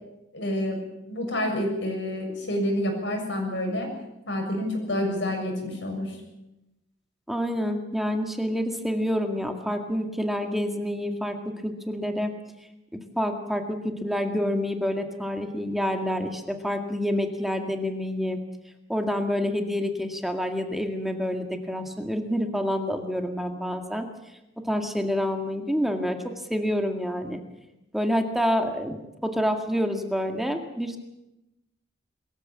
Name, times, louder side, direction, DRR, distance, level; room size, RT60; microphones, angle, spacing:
voice 1, 0.3-0.8 1.1-3.9 4.3-6.2, left 1 dB, 70° left, 2 dB, 7.0 m, -28 dB
voice 2, 7.3-12.3 13.2-18.4 18.9-24.1 24.6-26.2 26.5-27.4 27.9-31.0, equal, ahead, 4 dB, 2.0 m, -27 dB
22.0 x 14.5 x 8.8 m, 0.93 s
head